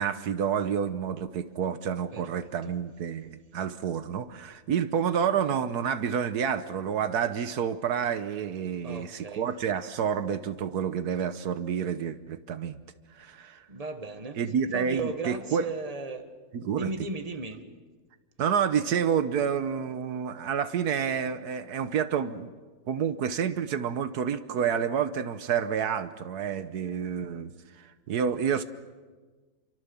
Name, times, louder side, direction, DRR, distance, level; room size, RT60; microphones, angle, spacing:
voice 1, 0.0-12.8 13.1-13.6 14.4-15.7 16.5-16.9 18.4-22.5 22.9-28.6, right 7 dB, 80° right, 11 dB, 1.5 m, -29 dB
voice 2, 2.1-2.7 8.8-9.5 13.7-14.4 14.7-16.3 16.8-17.6, right 3 dB, 25° right, 7 dB, 1.7 m, -36 dB
28.0 x 24.0 x 7.2 m, 1.4 s
omnidirectional pair, 1.6 m